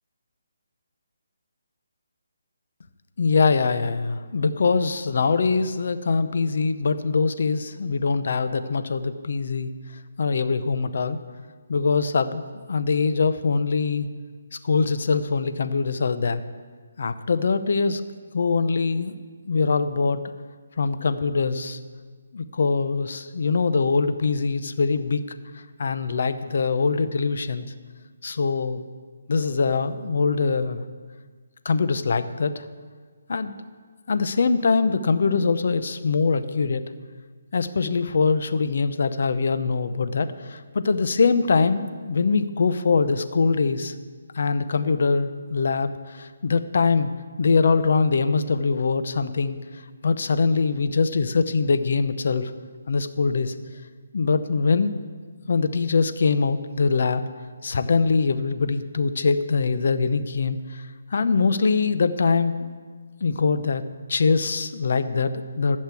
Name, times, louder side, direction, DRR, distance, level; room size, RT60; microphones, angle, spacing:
voice 1, 3.2-9.7 10.2-11.2 11.7-12.4 12.7-14.1 14.6-16.4 17.0-18.0 18.3-20.2 20.8-21.8 22.3-25.2 25.5-27.7 28.2-28.8 29.3-30.8 31.6-32.7 33.3-33.5 34.1-36.8 37.5-43.9 44.3-47.1 47.4-49.6 50.0-52.5 52.9-53.5 54.1-54.9 55.5-57.2 57.6-60.8 61.1-62.7 63.2-63.8 64.1-65.8, left 4 dB, 55° left, 11 dB, 0.7 m, -23 dB
11.5 x 6.5 x 8.4 m, 1.5 s
hypercardioid pair, 170°, 0 cm